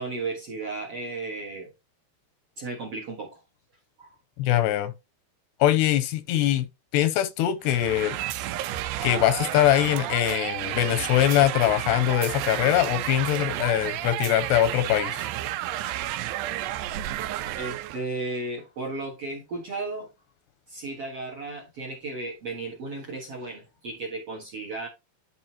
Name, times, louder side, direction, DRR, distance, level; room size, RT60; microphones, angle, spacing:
voice 1, 0.0-1.7 2.6-3.4 4.0-4.1 17.6-20.1 20.7-24.9, right 3 dB, 55° right, 1.8 m, -34 dB
voice 2, 4.4-4.9 5.6-6.7 6.9-8.1 9.0-15.3, left 13 dB, 85° left, 2.7 m, -22 dB
sound 1, 7.6-18.0, right 13 dB, 80° right, 2.7 m, -31 dB
11.0 x 5.0 x 2.9 m
omnidirectional pair, 4.9 m